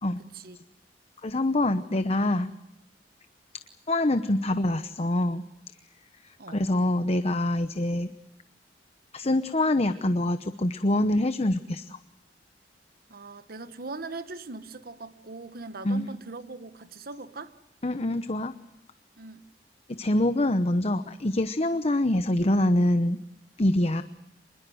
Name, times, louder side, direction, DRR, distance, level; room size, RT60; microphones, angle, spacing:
voice 1, 0.2-0.6 6.4-6.6 13.1-17.5 19.2-19.4, right 3 dB, 55° right, 1.2 m, -40 dB
voice 2, 1.2-2.5 3.9-5.4 6.2-8.1 9.1-12.0 15.8-16.1 17.8-18.6 19.9-23.2 23.6-24.0, left 1 dB, 35° left, 0.9 m, -25 dB
26.5 x 21.5 x 7.8 m
head